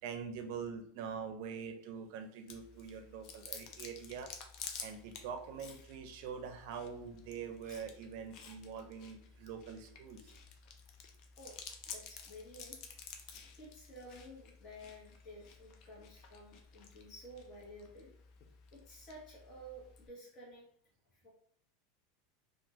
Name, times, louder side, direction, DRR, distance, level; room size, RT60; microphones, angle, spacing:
voice 1, 0.0-4.3 4.8-10.3, right 6 dB, 60° right, 6 dB, 0.5 m, -44 dB
Chewing mastication, 2.5-20.1, left 6 dB, 50° left, 0.5 m, -52 dB
voice 2, 11.8-12.9 13.5-18.1 18.7-20.6 21.1-21.3, equal, 30° left, -6 dB, 1.3 m, -52 dB
2.6 x 2.4 x 3.0 m, 0.67 s
supercardioid pair, 125°, 0 cm